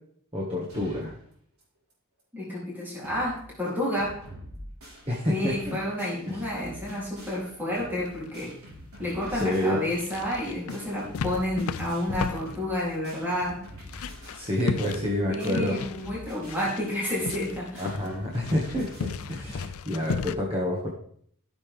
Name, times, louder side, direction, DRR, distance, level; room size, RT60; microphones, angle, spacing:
voice 1, 0.3-1.1 5.1-5.8 6.3-6.4 9.3-9.9 14.3-15.8 17.8-20.9, left 1 dB, 25° right, -3 dB, 1.8 m, -28 dB
sound 1, 0.7-1.2 1.6-1.7 1.9-2.0 2.5-2.6 2.8-3.4 3.7-19.5, equal, 75° right, 4.0 m, -46 dB
voice 2, 2.3-4.2 5.3-8.5 9.0-13.6 15.3-17.9, left 1 dB, 10° right, -7 dB, 3.3 m, -30 dB
sound 2, 6.9-20.3, left 5 dB, 70° left, 0.5 m, -37 dB
13.5 x 7.2 x 3.5 m, 0.64 s
head